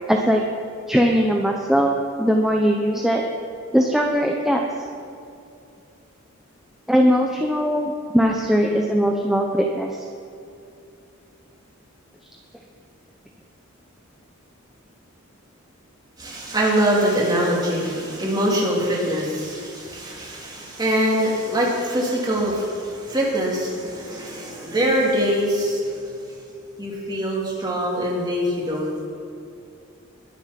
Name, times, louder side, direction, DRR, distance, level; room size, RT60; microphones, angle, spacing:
voice 1, 0.1-0.4 0.9-3.2 3.7-4.6 6.9-9.9, equal, ahead, 0 dB, 0.8 m, -20 dB
voice 2, 16.2-26.1 26.8-29.0, equal, 20° right, -4 dB, 2.9 m, -23 dB
21.5 x 7.2 x 6.0 m, 2.6 s
head